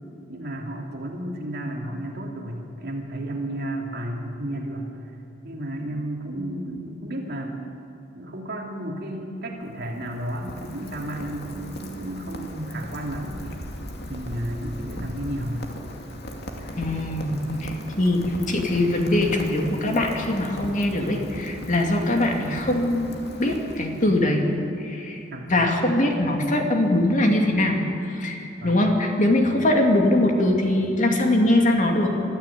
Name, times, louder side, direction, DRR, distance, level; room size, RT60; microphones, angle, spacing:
voice 1, 0.3-4.9 5.4-7.6 8.1-13.6 14.1-15.7 25.3-25.6 28.6-28.8, right 1 dB, 60° right, 0 dB, 2.9 m, -32 dB
Rain, 9.5-24.3, equal, 60° left, 2.5 m, -38 dB
voice 2, 16.8-23.1 23.4-24.5 24.8-25.2 25.5-32.1, left 1 dB, 40° left, 2 dB, 2.6 m, -22 dB
23.5 x 14.0 x 8.6 m, 2.8 s
head